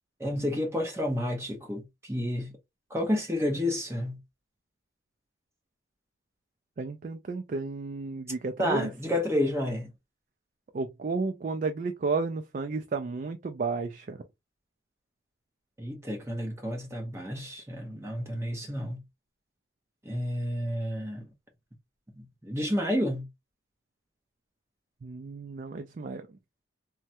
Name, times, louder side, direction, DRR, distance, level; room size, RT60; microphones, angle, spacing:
voice 1, 0.2-2.5 2.9-4.2 8.6-9.9 15.8-19.0 20.0-21.3 22.1-23.2, left 1 dB, 15° right, 0.9 m, -30 dB
voice 2, 6.8-8.9 10.7-14.2 25.0-26.3, right 4 dB, 40° right, 0.3 m, -32 dB
3.3 x 2.1 x 2.8 m
head